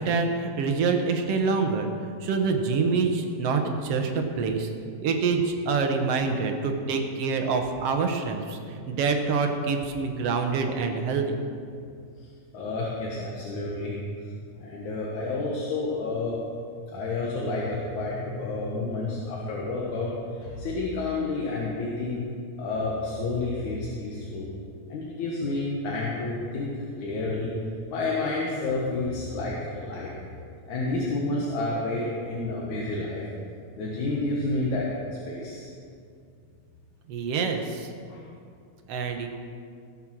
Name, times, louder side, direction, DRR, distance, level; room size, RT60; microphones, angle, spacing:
voice 1, 0.0-1.9 2.2-4.7 5.0-8.6 8.9-11.4 37.1-37.9 38.9-39.3, right 4 dB, 65° right, 4 dB, 1.9 m, -26 dB
voice 2, 12.5-14.0 14.6-16.3 16.9-20.1 20.4-22.2 22.6-24.5 24.9-26.7 27.0-27.5 27.9-30.1 30.7-33.2 33.8-34.9 35.3-35.7 38.1-38.2, left 2 dB, 80° left, -4 dB, 2.9 m, -30 dB
17.5 x 7.4 x 6.1 m, 2.3 s
omnidirectional pair, 3.4 m